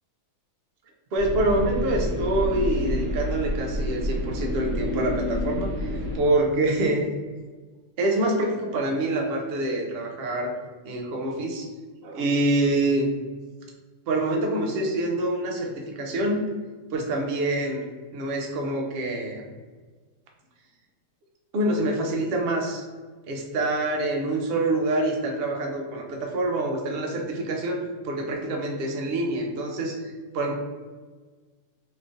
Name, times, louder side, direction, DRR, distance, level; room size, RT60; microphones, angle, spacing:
voice 1, 1.1-7.0 8.0-10.5 10.8-11.7 12.0-13.1 14.1-16.4 16.9-17.8 18.1-19.4 21.5-22.9 23.3-30.5, right 1 dB, 70° right, 1 dB, 0.5 m, -26 dB
sound 1, 1.2-6.2, equal, 85° right, 1.4 m, -28 dB
3.8 x 3.2 x 2.5 m, 1.4 s
omnidirectional pair, 1.7 m